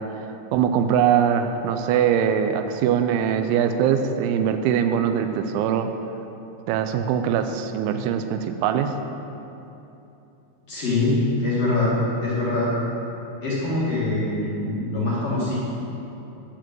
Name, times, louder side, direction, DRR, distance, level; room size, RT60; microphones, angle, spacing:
voice 1, 0.0-5.9 6.7-8.9, right 8 dB, 90° right, 8 dB, 2.9 m, -22 dB
voice 2, 10.7-11.9 12.2-12.8 13.4-15.5, left 2 dB, 50° left, -9 dB, 1.9 m, -23 dB
11.0 x 4.9 x 7.4 m, 2.9 s
omnidirectional pair, 5.3 m